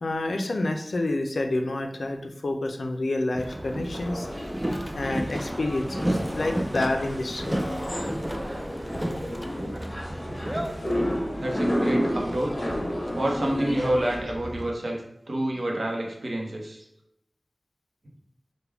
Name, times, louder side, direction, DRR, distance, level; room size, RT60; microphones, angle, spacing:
voice 1, 0.0-4.3 4.9-7.6, left 2 dB, 85° left, 5 dB, 0.3 m, -28 dB
Boat Water vehicle, 3.3-14.7, right 1 dB, 15° right, 0.3 m, -33 dB
sound 1, 3.8-14.2, equal, 30° left, 1.1 m, -31 dB
voice 2, 11.4-12.7 13.1-15.0 15.3-16.8, right 1 dB, 70° right, 0 dB, 0.7 m, -28 dB
3.4 x 2.1 x 3.3 m, 0.79 s
wide cardioid pair, 70°, 0 cm